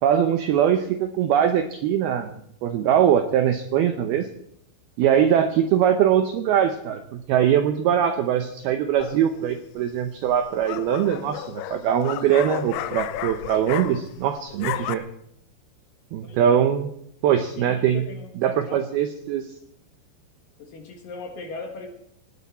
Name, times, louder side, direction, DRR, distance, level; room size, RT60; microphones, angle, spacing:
voice 1, 0.0-2.3 2.6-4.3 5.0-15.0 16.1-16.9 17.2-18.0 18.4-19.5, right 9 dB, 90° right, 8 dB, 2.2 m, -22 dB
sound 1, 9.0-9.4 10.3-14.2 14.5-14.9, left 13 dB, 85° left, 3.4 m, -32 dB
voice 2, 16.2-16.5 17.4-18.8 20.6-21.9, left 4 dB, 60° left, 4 dB, 2.6 m, -39 dB
18.5 x 17.0 x 4.2 m, 0.71 s
omnidirectional pair, 5.6 m